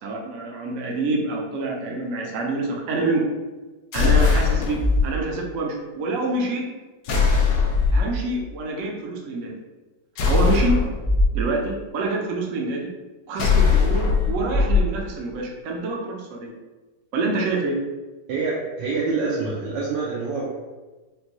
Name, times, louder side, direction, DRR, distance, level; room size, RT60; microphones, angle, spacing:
voice 1, 0.0-3.2 3.9-6.7 7.9-9.5 10.3-10.7 11.3-12.9 13.3-16.5 17.1-17.8, right 3 dB, 60° right, 0 dB, 0.8 m, -26 dB
sound 1, 3.9-5.0 7.1-8.1 10.2-11.3 13.4-14.8, left 5 dB, 75° left, 1.3 m, -19 dB
voice 2, 18.3-20.5, right 4 dB, 80° right, -5 dB, 1.3 m, -26 dB
5.1 x 2.2 x 2.9 m, 1.2 s
omnidirectional pair, 2.0 m